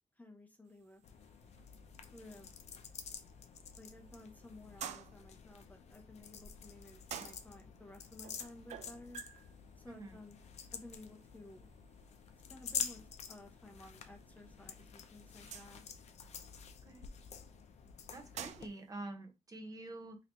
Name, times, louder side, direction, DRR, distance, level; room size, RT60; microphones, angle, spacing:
voice 1, 0.2-1.0 2.1-2.5 3.8-9.2 9.8-10.4 10.7-11.7 12.5-13.0 13.3-15.8, left 2 dB, 15° left, 3 dB, 0.6 m, -55 dB
sound 1, 0.7-18.9, right 9 dB, 85° right, 0.4 m, -54 dB
sound 2, 1.0-18.7, left 7 dB, 70° left, 0.5 m, -48 dB
voice 2, 9.9-10.2 16.9-17.1 18.1-20.2, right 2 dB, 30° right, 5 dB, 0.7 m, -47 dB
2.9 x 2.7 x 3.2 m, 0.26 s
cardioid pair, 100°, 12 cm